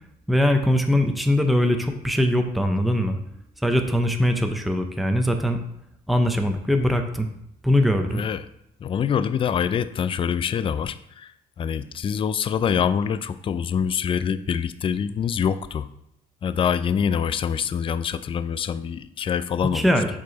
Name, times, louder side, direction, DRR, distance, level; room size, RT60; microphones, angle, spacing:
voice 1, 0.3-3.2 3.6-5.6 6.1-7.3 7.6-8.2 19.7-20.1, left 1 dB, ahead, 5 dB, 0.7 m, -21 dB
voice 2, 8.1-8.4 8.8-11.3 11.6-15.9 16.4-19.9, left 7 dB, 30° left, 13 dB, 0.4 m, -25 dB
7.5 x 4.7 x 4.0 m, 0.78 s
cardioid pair, 110°, 17 cm